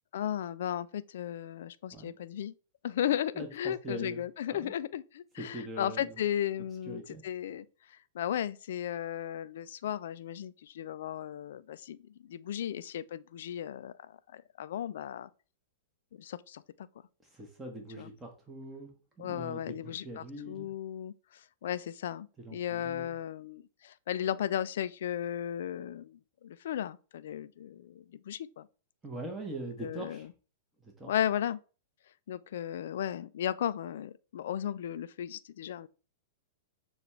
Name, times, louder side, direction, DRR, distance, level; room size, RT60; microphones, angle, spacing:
voice 1, 0.1-2.5 2.8-15.3 16.2-16.9 18.0-18.1 19.2-21.1 21.6-28.7 29.8-30.3 31.1-31.6 32.3-35.9, left 10 dB, 60° left, 0.3 m, -35 dB
voice 2, 3.3-4.2 4.5-4.7 5.4-6.1 6.9-7.2 17.3-18.9 19.2-20.7 22.4-23.1 29.0-30.3 31.0-31.1, right 1 dB, 10° right, 1.0 m, -42 dB
6.6 x 2.4 x 3.1 m
figure-of-eight pair, 105°, 0 cm